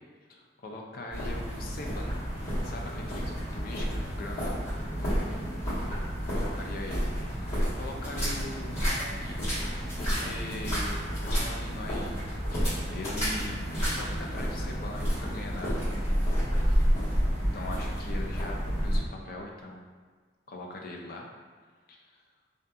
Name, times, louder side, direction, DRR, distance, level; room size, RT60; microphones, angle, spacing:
voice 1, 0.3-2.2 2.6-4.6 6.3-7.1 7.7-9.6 10.0-12.2 12.5-13.6 13.9-15.9 17.4-19.9 20.5-21.3 21.9-22.1, left 2 dB, 55° left, 0 dB, 0.4 m, -41 dB
sound 1, 1.1-19.0, equal, 40° left, 1.4 m, -30 dB
2.6 x 2.4 x 2.2 m, 1.5 s
head